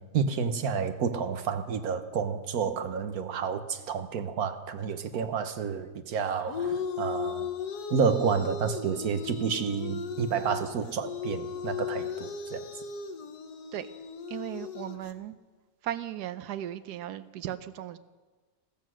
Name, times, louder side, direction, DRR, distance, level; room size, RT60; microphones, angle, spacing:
voice 1, 0.1-7.5 7.9-12.7, right 6 dB, 70° right, 9 dB, 1.5 m, -30 dB
sound 1, 6.2-15.1, left 6 dB, 85° left, 1.6 m, -36 dB
voice 2, 14.3-15.4 15.8-18.0, right 12 dB, 90° right, 12 dB, 1.2 m, -36 dB
14.5 x 14.5 x 6.3 m, 1.3 s
omnidirectional pair, 1.7 m